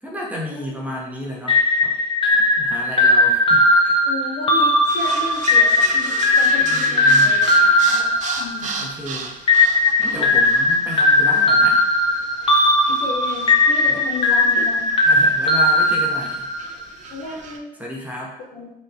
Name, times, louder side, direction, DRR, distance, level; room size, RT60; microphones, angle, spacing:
voice 1, 0.0-1.9 2.6-3.9 6.7-7.5 8.8-9.3 10.0-11.8 13.9-14.0 15.0-16.5 17.8-18.3, equal, 10° right, -3 dB, 0.7 m, -32 dB
sound 1, 1.5-8.9 9.5-16.7, left 2 dB, 30° left, 0.5 m, -17 dB
voice 2, 4.1-8.9 12.9-14.9 17.1-17.7 18.5-18.7, left 3 dB, 85° left, -3 dB, 0.7 m, -33 dB
sound 2, 4.9-17.6, right 4 dB, 45° right, 0.4 m, -35 dB
4.3 x 2.2 x 2.6 m, 0.86 s
cardioid pair, 110°, 17 cm